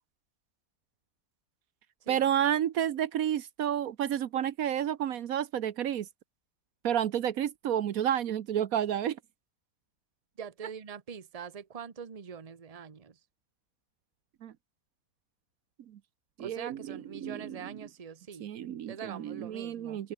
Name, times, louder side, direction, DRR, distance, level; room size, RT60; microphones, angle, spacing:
voice 1, 2.1-6.1 6.8-9.2 14.4-14.5 15.9-16.0 16.4-17.7 18.4-20.1, right 10 dB, 75° right, 1.3 m, -30 dB
voice 2, 10.4-13.2 16.4-18.5 18.9-20.0, right 7 dB, 30° right, 1.0 m, -43 dB
omnidirectional pair, 1.5 m